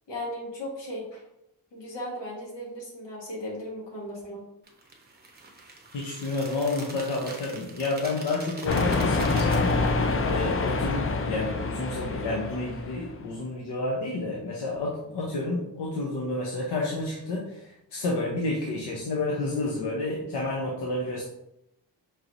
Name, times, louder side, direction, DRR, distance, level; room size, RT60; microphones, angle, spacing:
voice 1, 0.1-1.2 1.7-4.4, equal, 85° left, -3 dB, 1.5 m, -36 dB
sound 1, 4.7-10.1, right 2 dB, 25° right, 0.7 m, -43 dB
voice 2, 5.9-21.2, left 2 dB, 70° left, -2 dB, 0.8 m, -30 dB
sound 2, 8.7-13.2, left 3 dB, 35° left, 0.4 m, -26 dB
5.4 x 2.9 x 2.6 m, 0.83 s
wide cardioid pair, 105°, 42 cm